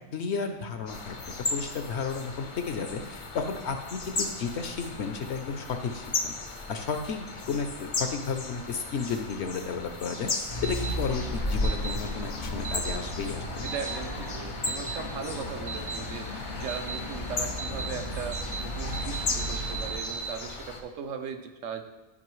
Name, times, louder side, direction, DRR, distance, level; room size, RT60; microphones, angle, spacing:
voice 1, 0.1-6.4 6.7-13.5, left 5 dB, 65° left, 6 dB, 0.8 m, -33 dB
sound 1, 0.9-20.8, left 3 dB, 45° left, 0.4 m, -37 dB
sound 2, 10.5-20.0, left 1 dB, 90° left, 2.3 m, -34 dB
sound 3, 10.6-10.9 11.6-12.0 12.6-13.0 13.7-14.0 14.7-15.0 15.7-16.0 16.7-17.0 17.6-17.9 18.3-18.6 18.9-20.3, right 6 dB, 45° right, 0.7 m, -36 dB
voice 2, 13.6-21.8, right 6 dB, 70° right, 6 dB, 0.9 m, -38 dB
11.0 x 5.2 x 3.1 m, 1.1 s
omnidirectional pair, 1.4 m